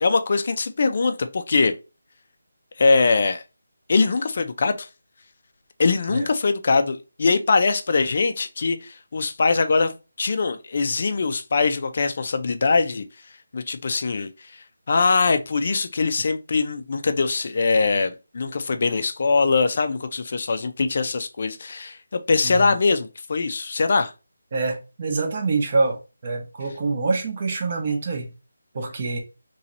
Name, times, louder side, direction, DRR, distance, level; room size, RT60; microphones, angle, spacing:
voice 1, 0.0-1.8 2.8-3.4 3.9-4.9 5.8-13.1 13.5-14.5 14.9-24.1, left 4 dB, 40° left, 0.4 m, -22 dB
voice 2, 22.4-22.8 24.5-28.3 28.7-29.2, right 3 dB, 30° right, 0.8 m, -25 dB
3.0 x 2.8 x 3.9 m
figure-of-eight pair, 175°, 0 cm